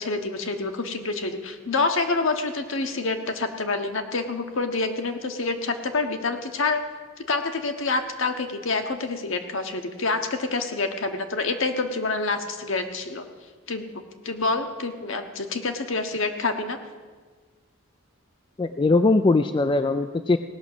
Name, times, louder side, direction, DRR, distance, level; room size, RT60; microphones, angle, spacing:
voice 1, 0.0-6.8 7.3-13.2 13.7-16.8, left 3 dB, 65° left, 6 dB, 1.2 m, -27 dB
voice 2, 18.6-20.4, left 3 dB, 20° left, 9 dB, 0.3 m, -20 dB
17.5 x 6.1 x 7.9 m, 1.4 s
head